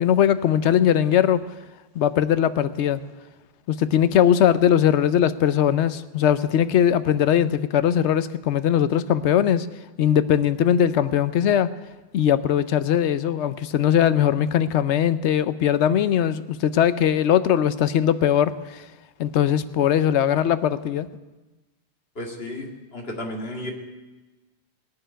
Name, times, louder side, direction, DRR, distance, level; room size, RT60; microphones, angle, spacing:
voice 1, 0.0-1.4 1.9-3.0 3.7-9.7 10.0-11.7 12.1-18.8 19.2-21.1, left 9 dB, 90° left, 14 dB, 0.9 m, -20 dB
voice 2, 22.2-23.7, left 1 dB, 60° left, 1 dB, 2.2 m, -33 dB
17.5 x 6.8 x 10.0 m, 1.2 s
omnidirectional pair, 1.1 m